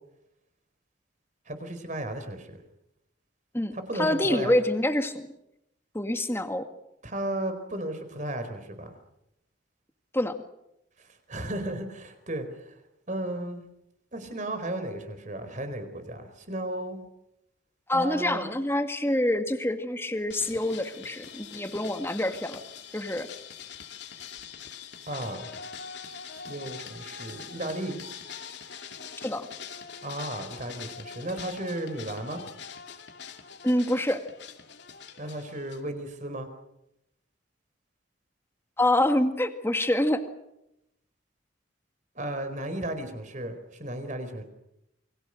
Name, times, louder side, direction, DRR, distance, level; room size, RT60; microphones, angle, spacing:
voice 1, 1.5-2.6 3.7-4.5 7.0-9.0 11.0-12.8 13.1-13.6 14.1-17.0 17.9-18.5 25.1-25.5 26.3-28.0 30.0-32.4 35.2-36.5 42.1-44.4, right 1 dB, 40° right, 9 dB, 4.5 m, -34 dB
voice 2, 3.5-5.3 5.9-6.7 10.1-10.4 17.9-22.6 22.9-23.3 29.2-29.5 33.6-34.2 38.8-40.2, left 1 dB, 15° left, 7 dB, 2.0 m, -26 dB
sound 1, 20.3-35.8, left 7 dB, 65° left, 2.6 m, -43 dB
29.0 x 23.5 x 6.5 m, 0.84 s
head